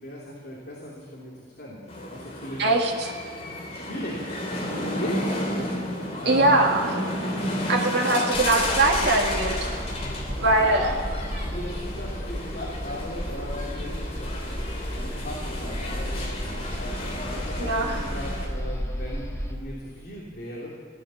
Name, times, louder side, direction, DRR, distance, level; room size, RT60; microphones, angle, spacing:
voice 1, 0.0-1.3 1.6-2.7 3.7-6.6 8.0-8.4 10.5-11.0 11.4-14.5 14.9-16.3 16.8-20.7, left 1 dB, 50° left, -6 dB, 3.2 m, -36 dB
sound 1, 1.9-18.5, left 1 dB, 35° left, 2.7 m, -32 dB
voice 2, 2.6-3.1 6.3-6.9 7.7-9.7 10.4-10.8 17.6-18.0, right 2 dB, 60° right, -1 dB, 2.1 m, -22 dB
sound 2, 8.3-19.5, equal, 15° left, 1.5 m, -33 dB
17.5 x 11.0 x 7.1 m, 2.2 s
head